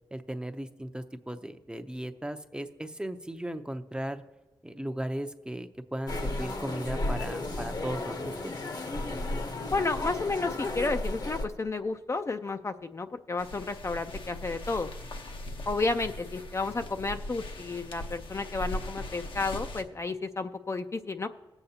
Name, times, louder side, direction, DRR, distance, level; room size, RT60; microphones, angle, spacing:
voice 1, 0.1-4.2 4.6-8.6, right 1 dB, 10° right, 8 dB, 0.6 m, -36 dB
sound 1, 6.1-11.5, left 2 dB, 55° left, 1.0 m, -33 dB
voice 2, 9.7-14.9 15.7-21.3, left 3 dB, 35° left, 7 dB, 0.5 m, -32 dB
sound 2, 13.4-19.8, left 1 dB, 75° left, 1.0 m, -40 dB
19.5 x 8.0 x 2.8 m, 1.2 s
wide cardioid pair, 85°, 9 cm